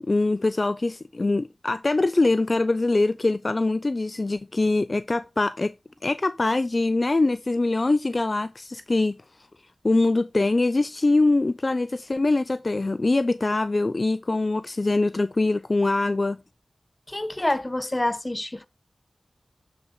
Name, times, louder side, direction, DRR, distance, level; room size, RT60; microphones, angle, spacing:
voice 1, 0.0-5.7 6.0-9.2 9.8-16.4, left 2 dB, 50° left, 0.4 m, -23 dB
voice 2, 17.1-18.7, left 1 dB, 30° left, 0.9 m, -27 dB
8.9 x 5.1 x 3.7 m
cardioid pair, 45°, 0 cm